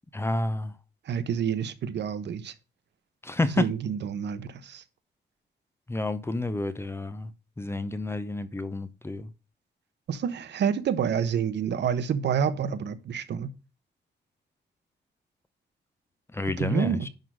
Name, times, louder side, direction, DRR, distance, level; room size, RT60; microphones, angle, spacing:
voice 1, 0.1-0.7 3.2-3.7 5.9-7.3 7.6-9.3 16.3-17.1, left 2 dB, 15° left, 0.7 m, -29 dB
voice 2, 1.1-2.5 3.6-4.8 10.1-13.5 16.6-17.1, right 7 dB, 70° right, 1.1 m, -28 dB
10.5 x 3.9 x 6.2 m
wide cardioid pair, 150°, 18 cm